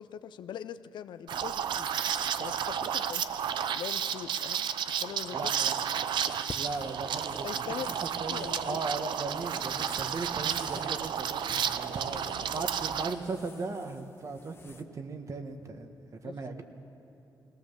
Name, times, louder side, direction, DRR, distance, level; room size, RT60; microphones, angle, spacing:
voice 1, 0.0-1.9 2.4-5.5 6.0-6.2 7.4-8.8 11.9-12.5 16.2-16.6, left 9 dB, 90° left, 12 dB, 0.6 m, -43 dB
Liquid, 1.3-13.1, right 8 dB, 85° right, 0.7 m, -32 dB
voice 2, 5.3-5.8 6.5-12.2 12.5-16.0 16.2-16.6, right 3 dB, 45° right, 7 dB, 1.4 m, -38 dB
sound 1, 5.8-14.8, left 4 dB, 30° left, 1.1 m, -51 dB
20.5 x 18.0 x 7.2 m, 3.0 s
wide cardioid pair, 135°, 8 cm